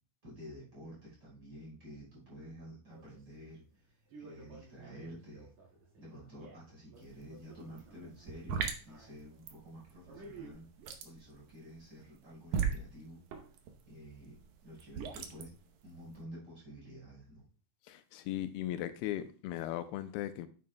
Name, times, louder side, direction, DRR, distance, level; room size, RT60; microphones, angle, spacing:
voice 1, 0.2-5.5 6.0-10.7 11.0-13.2 13.8-14.4 14.6-15.5 15.8-17.4, equal, 25° right, 5.5 m, -50 dB
sound 1, 2.9-10.5, right 3 dB, 50° right, 2.9 m, -54 dB
sound 2, 7.0-7.2 7.5-16.2, right 6 dB, 75° right, 1.8 m, -38 dB
voice 2, 17.9-20.5, left 13 dB, 85° left, 2.5 m, -37 dB
9.2 x 8.7 x 2.2 m
omnidirectional pair, 4.5 m